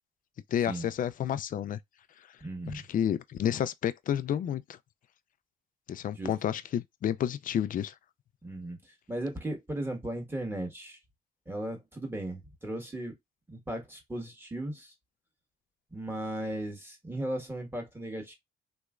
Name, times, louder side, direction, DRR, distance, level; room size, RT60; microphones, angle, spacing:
voice 1, 0.5-1.8 2.7-4.8 5.9-7.9, left 10 dB, 45° left, 0.4 m, -30 dB
voice 2, 2.4-2.8 6.2-6.3 8.4-8.8 9.1-11.0 11.5-13.2 13.5-14.9 15.9-18.3, right 1 dB, 10° right, 1.5 m, -36 dB
3.4 x 3.1 x 2.4 m
cardioid pair, 90°, 20 cm